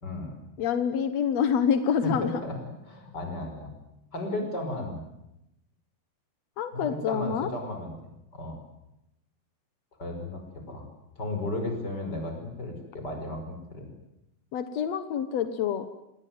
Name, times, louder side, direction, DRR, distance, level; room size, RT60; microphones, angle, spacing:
voice 1, 0.0-0.3 2.0-2.6 2.9-3.7 4.1-5.0 6.7-7.9 8.3-8.6 10.0-10.9 11.2-13.9, left 1 dB, 25° left, 4 dB, 5.9 m, -34 dB
voice 2, 0.6-2.3 6.6-7.5 14.5-15.8, left 7 dB, 70° left, 10 dB, 1.6 m, -27 dB
26.5 x 20.5 x 9.6 m, 0.87 s
omnidirectional pair, 4.7 m